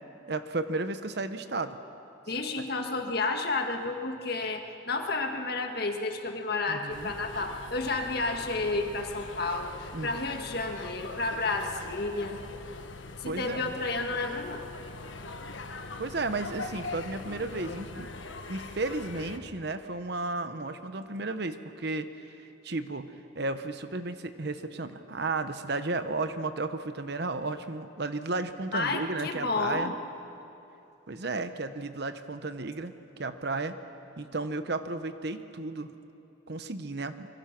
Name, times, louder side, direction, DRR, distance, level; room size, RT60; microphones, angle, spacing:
voice 1, 0.3-1.8 6.7-7.1 9.9-10.2 13.2-13.7 16.0-18.1 18.5-29.9 31.1-32.9 33.2-33.8 34.2-35.9 36.5-37.3, right 3 dB, 55° right, 10 dB, 1.0 m, -33 dB
voice 2, 2.3-12.4 13.2-14.6 28.7-30.0, left 3 dB, 55° left, 4 dB, 1.7 m, -31 dB
sound 1, 6.9-19.4, left 3 dB, 80° left, 1.3 m, -42 dB
25.5 x 23.5 x 6.0 m, 2.8 s
head